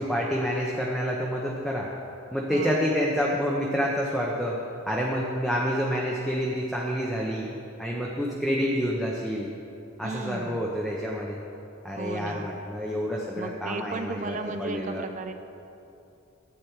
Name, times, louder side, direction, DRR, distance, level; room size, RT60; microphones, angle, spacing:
voice 1, 0.0-1.9 2.3-4.6 4.9-7.5 7.8-9.5 10.0-11.4 11.8-15.1, equal, ahead, -4 dB, 0.7 m, -28 dB
voice 2, 2.5-3.0 10.0-10.6 12.0-12.5 13.4-15.3, right 3 dB, 35° right, 8 dB, 0.5 m, -35 dB
11.5 x 8.3 x 4.5 m, 2.7 s
head